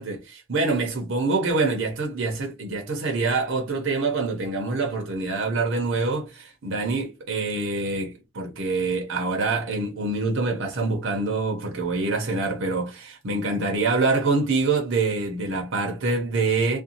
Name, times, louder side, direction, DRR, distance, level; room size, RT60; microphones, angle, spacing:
voice 1, 0.0-16.8, right 3 dB, 65° right, 0.7 m, -25 dB
2.6 x 2.2 x 2.7 m
head